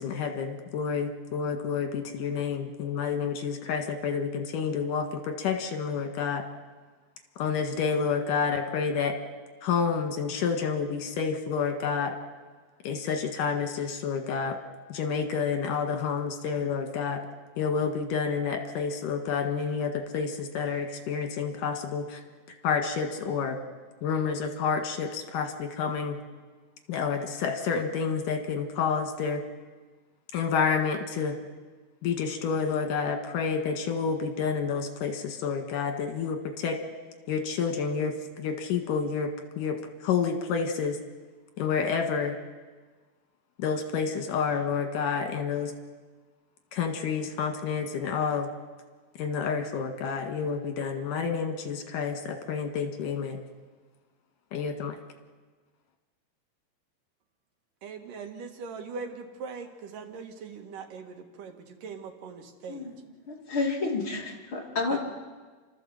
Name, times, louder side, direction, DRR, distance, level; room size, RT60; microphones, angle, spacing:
voice 1, 0.0-6.4 7.4-9.1 9.6-12.1 12.8-14.6 14.9-17.2 17.6-22.2 22.6-23.6 24.0-26.2 26.9-29.4 30.3-31.3 32.0-36.8 37.3-39.3 39.6-39.8 40.0-41.0 41.6-42.4 43.6-45.7 46.7-48.5 49.2-53.4 54.5-55.0, left 6 dB, 80° left, 5 dB, 3.3 m, -29 dB
voice 2, 57.8-62.9 64.9-65.0, right 5 dB, 85° right, 4 dB, 3.3 m, -40 dB
voice 3, 62.7-63.0 63.3-65.0, left 3 dB, 40° left, -1 dB, 3.5 m, -30 dB
29.5 x 13.0 x 7.7 m, 1.4 s
omnidirectional pair, 3.7 m